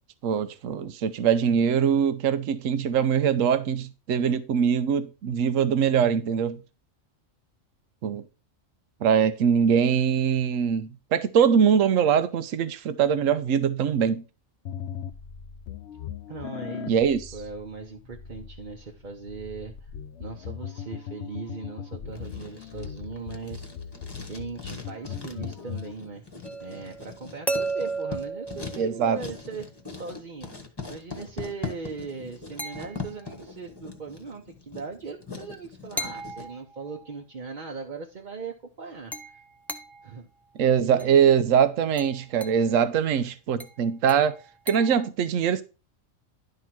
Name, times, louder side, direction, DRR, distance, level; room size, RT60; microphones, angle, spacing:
voice 1, 0.2-6.6 8.0-8.2 9.0-14.2 16.9-17.3 28.8-29.2 40.6-44.3 44.7-45.6, right 7 dB, 75° right, 1.1 m, -22 dB
sound 1, 14.7-25.9, left 8 dB, 60° left, 0.9 m, -39 dB
voice 2, 16.3-19.9 20.2-23.7 24.2-26.2 26.6-29.6 29.9-30.5 30.9-39.4 40.0-40.3 40.8-41.3, right 4 dB, 40° right, 1.0 m, -39 dB
Writing, 22.1-36.5, left 4 dB, 20° left, 1.2 m, -41 dB
sound 2, 26.4-29.5 32.6-33.4 36.0-37.2 39.1-40.2 41.0-41.3 42.0-42.7 43.6-45.1, right 2 dB, ahead, 0.5 m, -35 dB
11.0 x 3.9 x 5.9 m
omnidirectional pair, 1.4 m